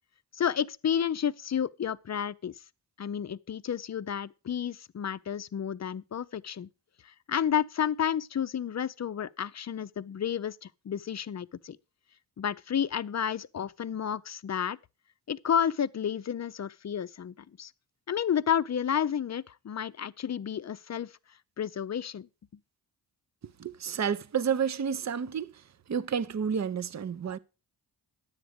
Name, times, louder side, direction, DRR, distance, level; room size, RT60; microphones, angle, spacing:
voice 1, 0.3-2.5 3.0-6.7 7.0-11.8 12.4-14.8 15.3-17.7 18.1-21.1 21.6-22.3, left 8 dB, 40° left, 0.5 m, -31 dB
voice 2, 23.6-25.5 25.9-27.4, right 7 dB, 35° right, 0.7 m, -30 dB
10.0 x 8.0 x 5.0 m
supercardioid pair, 40°, 46 cm